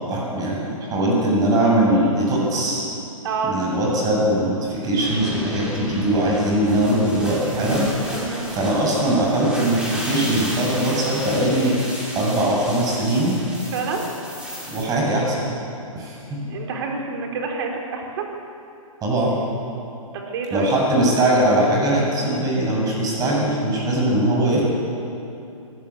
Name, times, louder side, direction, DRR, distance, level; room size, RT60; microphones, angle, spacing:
voice 1, 0.0-2.9 3.4-7.9 8.1-11.8 12.1-13.3 14.7-15.5 15.9-16.4 19.0-19.3 20.5-24.6, right 1 dB, 20° right, -2 dB, 7.5 m, -21 dB
voice 2, 3.2-3.6 8.2-8.4 13.7-14.0 16.5-18.3 20.1-20.7, right 5 dB, 45° right, 1 dB, 3.9 m, -28 dB
sound 1, 5.0-14.8, equal, 5° right, 5.3 m, -33 dB
24.0 x 17.0 x 8.6 m, 2.7 s
figure-of-eight pair, 125°, 18 cm